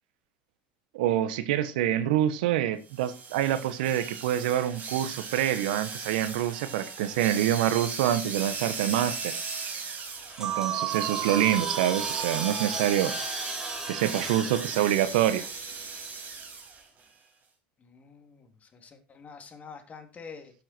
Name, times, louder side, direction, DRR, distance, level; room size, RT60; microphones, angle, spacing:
voice 1, 0.9-9.4 10.4-13.1 13.9-15.5, right 11 dB, 80° right, 1.3 m, -26 dB
sound 1, 2.9-16.8, right 4 dB, 35° right, 4.9 m, -37 dB
sound 2, 10.0-16.3, right 1 dB, 10° right, 3.0 m, -39 dB
sound 3, 10.4-14.3, right 14 dB, 55° right, 0.6 m, -35 dB
voice 2, 17.8-20.5, left 5 dB, 35° left, 3.1 m, -47 dB
12.0 x 7.8 x 4.5 m
supercardioid pair, 95°, 5 cm